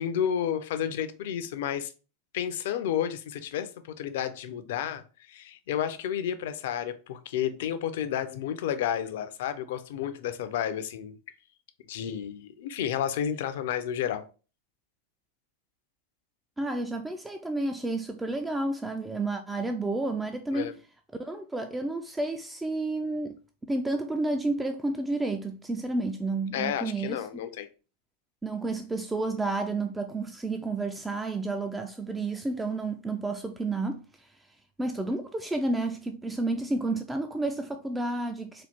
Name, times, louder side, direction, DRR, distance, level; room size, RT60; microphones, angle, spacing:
voice 1, 0.0-1.9 2.3-5.0 5.3-11.2 11.9-14.3 20.5-20.7 26.5-27.7, left 9 dB, 55° left, 0.5 m, -31 dB
voice 2, 16.6-20.7 21.2-27.2 28.4-34.3 34.8-38.7, right 2 dB, 10° right, 0.3 m, -31 dB
4.0 x 2.4 x 3.4 m
figure-of-eight pair, 90°, 0 cm